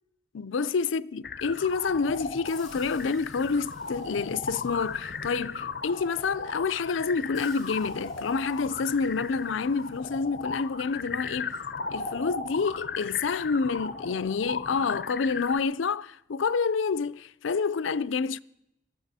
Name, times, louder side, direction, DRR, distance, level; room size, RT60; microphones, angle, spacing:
voice 1, 0.3-11.6 11.9-18.4, left 5 dB, 85° left, 0.5 m, -28 dB
sound 1, 1.2-15.6, left 4 dB, 50° left, 0.7 m, -36 dB
sound 2, 2.5-5.9 7.3-10.8, left 2 dB, ahead, 3.9 m, -57 dB
19.0 x 13.5 x 4.2 m
head